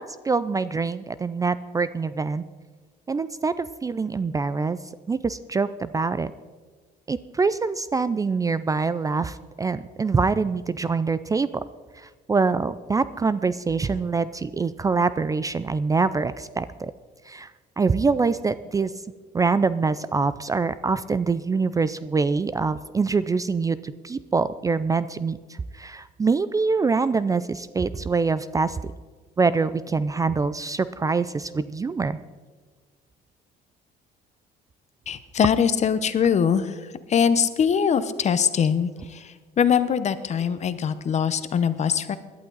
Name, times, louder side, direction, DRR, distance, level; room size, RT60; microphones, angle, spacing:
voice 1, 0.0-2.4 3.1-4.8 5.1-6.3 7.1-11.5 12.3-16.9 17.3-17.5 17.8-18.9 19.3-25.4 25.8-28.8 29.4-32.2, right 4 dB, 20° right, 15 dB, 0.4 m, -24 dB
voice 2, 35.1-36.7 37.1-39.2 39.6-42.2, left 7 dB, 40° left, 13 dB, 0.9 m, -22 dB
17.5 x 11.5 x 4.0 m, 1.4 s
cardioid pair, 110°, 17 cm